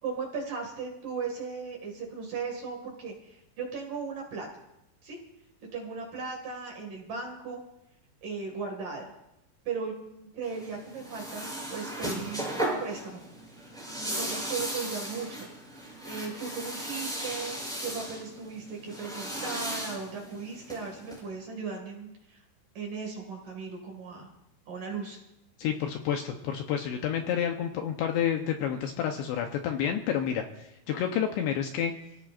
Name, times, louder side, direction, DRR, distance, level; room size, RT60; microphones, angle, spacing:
voice 1, 0.0-4.5 5.0-5.2 5.7-7.6 8.2-9.1 9.6-13.2 13.9-15.5 16.0-22.4 22.7-24.3 24.7-25.2, right 5 dB, 50° right, 1 dB, 3.0 m, -37 dB
sound 1, 10.4-21.2, right 1 dB, ahead, 7.5 m, -36 dB
voice 2, 25.6-31.9, left 9 dB, 75° left, 3 dB, 2.7 m, -29 dB
29.0 x 17.0 x 2.5 m, 0.87 s
omnidirectional pair, 5.9 m